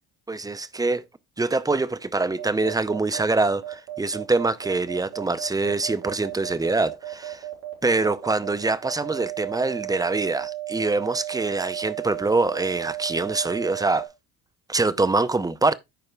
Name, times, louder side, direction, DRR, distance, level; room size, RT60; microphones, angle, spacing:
voice 1, 0.3-1.0 1.4-7.4 7.8-14.1 14.7-15.7, right 3 dB, 10° right, 0.6 m, -24 dB
sound 1, 2.4-14.1, right 14 dB, 75° right, 3.6 m, -34 dB
13.5 x 4.7 x 2.3 m
hypercardioid pair, 70°, 44 cm